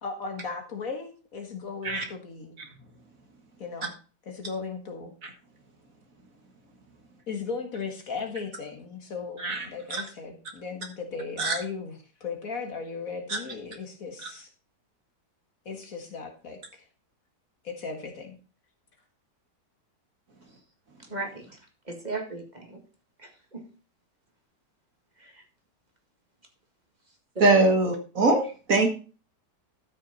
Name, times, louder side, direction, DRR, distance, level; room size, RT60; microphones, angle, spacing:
voice 1, 0.0-2.6 3.6-3.9 4.3-5.1 7.3-14.5 15.7-16.8 17.6-18.4, left 5 dB, 55° left, 4 dB, 1.8 m, -37 dB
voice 2, 9.4-10.0 11.4-11.5 13.3-13.4 14.2-14.3 27.4-28.9, right 2 dB, 55° right, 4 dB, 1.9 m, -23 dB
voice 3, 21.1-21.6 21.9-22.8 23.2-23.6 25.2-25.4, right 3 dB, 25° right, 2 dB, 2.0 m, -37 dB
13.0 x 6.2 x 4.1 m, 0.36 s
omnidirectional pair, 1.8 m